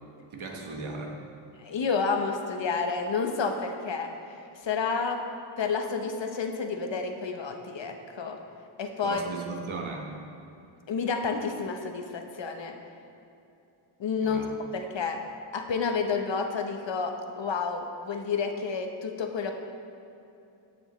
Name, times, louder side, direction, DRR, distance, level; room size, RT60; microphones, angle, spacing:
voice 1, 0.3-1.2 9.0-10.2 14.2-14.5, right 3 dB, 70° right, 1 dB, 1.3 m, -37 dB
voice 2, 1.6-4.1 4.6-5.2 5.6-8.4 8.8-9.2 10.9-12.7 14.0-14.4 14.7-15.2 15.5-19.5, left 5 dB, 60° left, 4 dB, 0.9 m, -30 dB
15.0 x 6.2 x 3.1 m, 2.8 s
wide cardioid pair, 90°, 50 cm